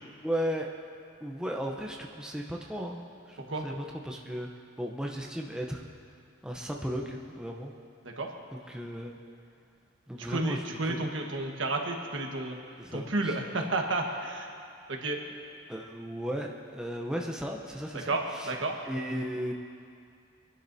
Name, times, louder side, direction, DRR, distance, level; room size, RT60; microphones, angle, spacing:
voice 1, 0.2-0.7 1.2-4.5 4.8-5.9 6.4-7.7 8.5-9.2 10.1-10.9 12.8-13.4 15.7-18.5 18.9-19.5, equal, 5° right, -1 dB, 0.7 m, -35 dB
voice 2, 10.2-12.6 12.9-14.5 14.9-15.2 18.1-18.7, right 2 dB, 80° right, 2 dB, 1.4 m, -31 dB
24.0 x 11.5 x 2.7 m, 2.4 s
head